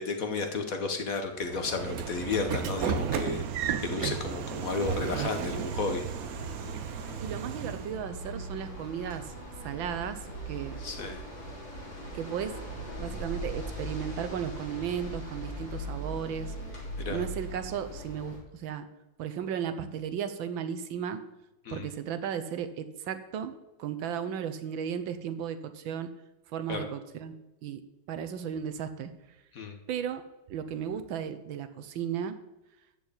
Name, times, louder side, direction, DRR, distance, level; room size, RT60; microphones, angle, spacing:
voice 1, 0.0-3.4 3.8-6.0 10.8-11.2 17.0-17.2 21.6-21.9 26.7-26.8 29.5-29.8, left 4 dB, 50° left, 6 dB, 1.4 m, -32 dB
sound 1, 1.3-17.6, right 1 dB, 35° right, 2.8 m, -53 dB
Train / Sliding door, 1.4-8.0, right 8 dB, 65° right, 1.0 m, -34 dB
sound 2, 4.8-18.4, right 1 dB, 70° left, 3.9 m, -40 dB
voice 2, 7.2-9.3 9.6-10.8 12.1-12.6 13.0-16.5 17.1-18.9 19.2-21.2 21.7-23.5 23.8-26.1 26.5-27.4 27.6-27.8 28.1-29.1 29.9-30.2 30.5-32.4, right 8 dB, 90° right, 10 dB, 1.6 m, -35 dB
13.5 x 4.6 x 8.7 m, 0.95 s
omnidirectional pair, 2.1 m